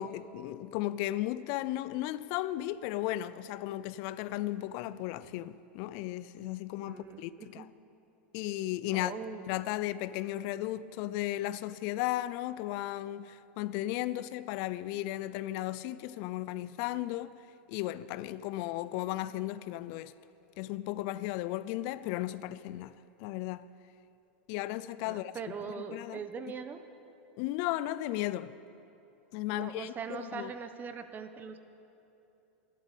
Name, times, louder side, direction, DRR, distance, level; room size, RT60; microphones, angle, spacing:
voice 1, 0.0-7.7 8.3-9.1 9.5-17.4 17.7-20.1 20.6-23.7 24.5-25.3 25.6-26.2 27.4-28.5 29.3-30.5, left 15 dB, 55° left, 0.4 m, -35 dB
voice 2, 6.9-7.7 8.9-9.5 25.1-26.8 29.5-31.6, right 5 dB, 30° right, 1.1 m, -41 dB
12.0 x 12.0 x 8.3 m
hypercardioid pair, 105°, 6 cm